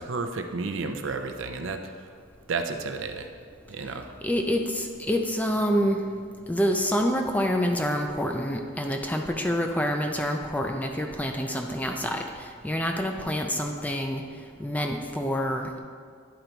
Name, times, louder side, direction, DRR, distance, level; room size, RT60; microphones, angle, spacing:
voice 1, 0.0-2.1 2.5-3.3 3.7-4.1, right 4 dB, 65° right, 5 dB, 0.5 m, -32 dB
voice 2, 4.2-6.0 6.5-14.2 14.6-15.8, equal, 5° left, 3 dB, 0.4 m, -27 dB
10.5 x 3.9 x 4.5 m, 2.1 s
head